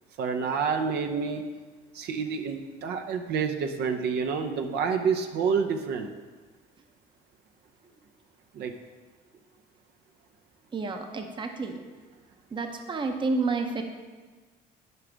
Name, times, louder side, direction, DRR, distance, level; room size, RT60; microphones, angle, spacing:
voice 1, 0.2-1.4 1.9-6.1 8.5-8.7, right 6 dB, 75° right, 5 dB, 0.7 m, -28 dB
voice 2, 10.7-11.8 12.5-13.8, right 3 dB, 30° right, 5 dB, 0.7 m, -30 dB
11.0 x 4.9 x 3.4 m, 1.4 s
cardioid pair, 110°, 17 cm